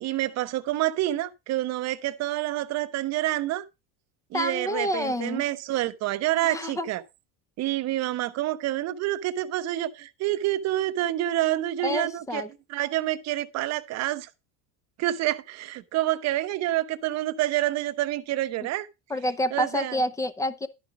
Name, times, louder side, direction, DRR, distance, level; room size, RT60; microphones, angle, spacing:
voice 1, 0.0-3.6 4.3-7.0 7.6-12.4 12.7-14.3 15.0-18.9 19.5-20.0, right 15 dB, 45° right, 0.9 m, -28 dB
voice 2, 4.3-5.4 6.4-6.9 11.8-12.5 19.1-20.7, left 1 dB, 10° left, 0.6 m, -28 dB
12.0 x 5.1 x 4.9 m
cardioid pair, 145°, 38 cm